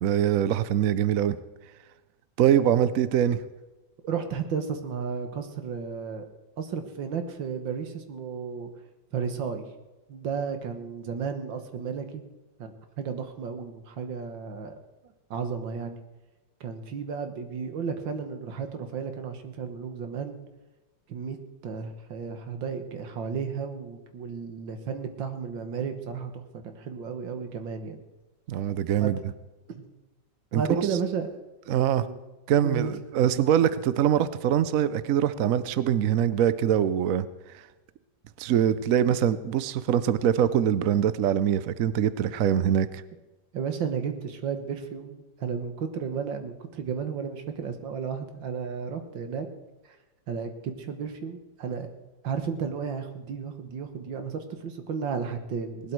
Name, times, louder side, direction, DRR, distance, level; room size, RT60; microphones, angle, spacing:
voice 1, 0.0-1.4 2.4-3.4 28.5-29.2 30.5-30.6 31.7-32.0 32.5-37.3 38.4-42.9, right 9 dB, 65° right, 15 dB, 0.9 m, -23 dB
voice 2, 4.0-6.2 6.6-8.7 9.1-9.6 10.1-12.3 12.6-14.7 15.3-16.0 16.6-20.4 21.1-28.0 29.0-29.1 29.7-29.8 30.5-31.4 32.0-32.2 32.6-32.9 43.5-49.5 49.9-50.0 50.3-51.9 52.2-55.9, right 6 dB, 80° right, 7 dB, 2.0 m, -33 dB
19.0 x 12.0 x 4.6 m, 1.1 s
omnidirectional pair, 2.0 m